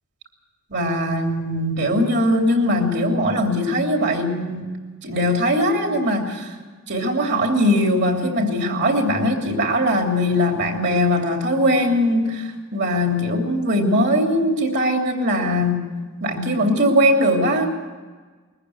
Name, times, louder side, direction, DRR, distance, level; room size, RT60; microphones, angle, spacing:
voice 1, 0.7-4.7 5.0-6.5 6.9-15.8 16.2-17.7, equal, 55° right, 2 dB, 3.1 m, -20 dB
21.5 x 14.5 x 9.7 m, 1.4 s
head